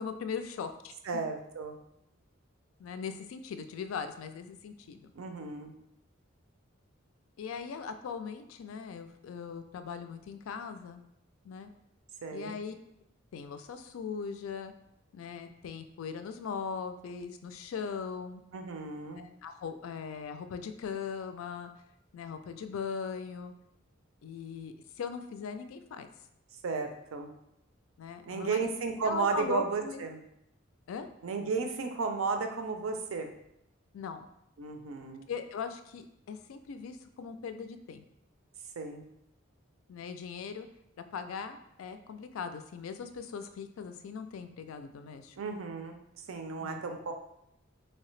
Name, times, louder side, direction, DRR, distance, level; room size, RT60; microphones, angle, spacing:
voice 1, 0.0-0.9 2.8-5.1 7.4-11.0 11.4-11.7 12.3-12.7 13.3-14.7 15.1-18.4 19.1-21.7 22.1-23.5 24.2-26.1 28.0-28.7 29.0-30.1 30.9-31.1 33.9-34.3 35.3-38.0 39.9-40.7 41.1-45.4 46.6-46.8, left 6 dB, 85° left, 9 dB, 0.3 m, -39 dB
voice 2, 1.1-1.8 5.2-5.7 12.2-12.6 18.5-19.3 26.6-27.3 28.3-30.2 31.2-33.3 34.6-35.3 38.8-39.1 45.4-46.0 46.3-47.1, right 4 dB, 85° right, 5 dB, 0.5 m, -34 dB
3.2 x 2.8 x 3.1 m, 0.79 s
head